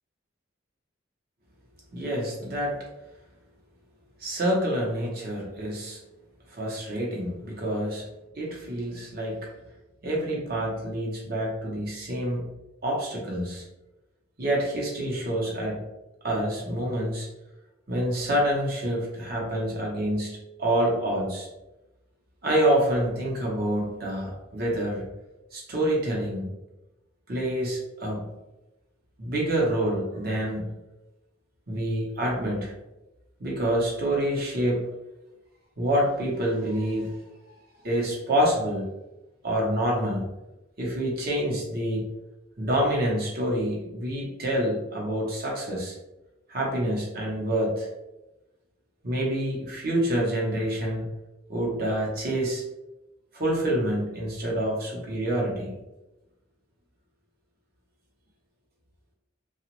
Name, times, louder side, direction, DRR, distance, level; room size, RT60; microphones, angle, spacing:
voice 1, 1.9-2.8 4.2-6.0 6.5-8.1 8.4-9.5 10.0-12.5 12.8-13.6 14.4-15.8 16.2-17.3 17.9-21.5 22.4-25.0 25.5-26.5 27.3-28.2 29.2-30.8 31.7-32.7 33.4-34.9 35.8-37.2 37.8-38.9 39.4-40.3 40.8-42.1 42.6-46.0 46.5-47.9 49.0-51.1 51.5-52.6 53.3-55.8, right 1 dB, 50° right, -3 dB, 0.9 m, -27 dB
2.9 x 2.4 x 3.0 m, 1.0 s
head